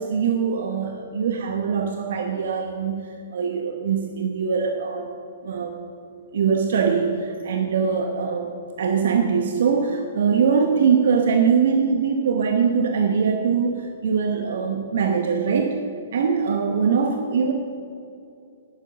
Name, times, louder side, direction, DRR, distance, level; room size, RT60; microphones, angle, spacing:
voice 1, 0.0-5.1 5.4-5.8 6.3-8.5 8.8-15.8 16.1-17.5, right 6 dB, 55° right, 4 dB, 1.0 m, -22 dB
12.0 x 9.2 x 6.7 m, 2.6 s
figure-of-eight pair, 115°, 0 cm